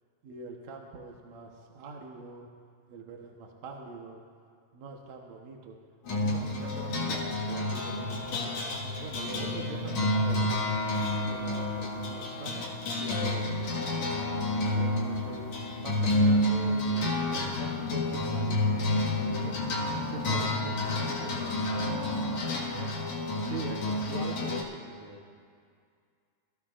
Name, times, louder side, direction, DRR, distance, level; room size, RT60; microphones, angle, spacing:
voice 1, 0.2-2.5 2.9-4.2 4.7-5.8 6.1-10.5 11.3-12.7 13.0-13.6 14.7-15.5 15.8-19.6 20.0-22.0 22.7-23.0 23.4-25.2, right 3 dB, 65° right, 0 dB, 1.9 m, -43 dB
sound 1, 6.0-24.6, left 1 dB, 55° left, 2.6 m, -29 dB
25.0 x 14.5 x 2.5 m, 2.2 s
omnidirectional pair, 4.3 m